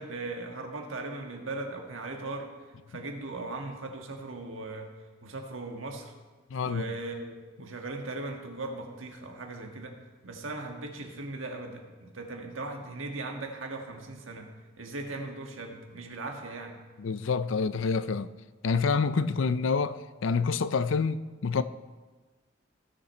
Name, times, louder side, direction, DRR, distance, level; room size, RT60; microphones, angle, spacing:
voice 1, 0.0-2.5 2.9-4.9 5.2-6.1 6.6-9.9 10.2-14.5 14.8-16.8, right 2 dB, 85° right, 1.7 m, -38 dB
voice 2, 6.5-6.8 17.0-18.3 18.6-21.6, left 5 dB, 75° left, 0.5 m, -27 dB
18.5 x 6.6 x 4.3 m
head